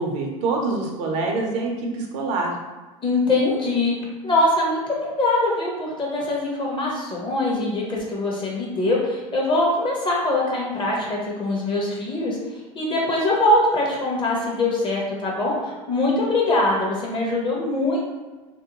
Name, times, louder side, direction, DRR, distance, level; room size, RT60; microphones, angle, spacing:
voice 1, 0.0-2.5, right 3 dB, 65° right, 1 dB, 0.6 m, -25 dB
voice 2, 3.0-3.9 4.2-12.4 12.7-18.0, left 2 dB, 30° left, -3 dB, 0.9 m, -22 dB
2.6 x 2.1 x 2.8 m, 1.3 s
hypercardioid pair, 100°, 18 cm